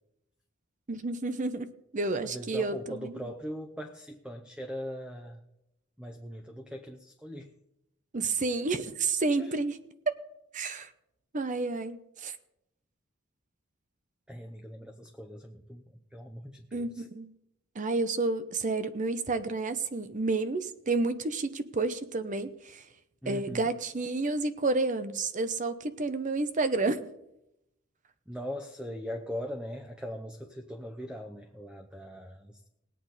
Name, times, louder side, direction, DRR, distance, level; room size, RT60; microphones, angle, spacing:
voice 1, 0.9-3.1 8.1-9.7 10.5-10.9 11.3-12.3 16.7-17.3 17.8-22.8 23.3-27.1, right 3 dB, 40° right, 12 dB, 0.7 m, -30 dB
voice 2, 2.2-5.4 6.0-7.5 9.4-9.6 14.3-17.1 23.2-23.7 28.3-32.6, equal, 5° right, 5 dB, 0.7 m, -40 dB
19.5 x 8.4 x 4.2 m, 0.86 s
head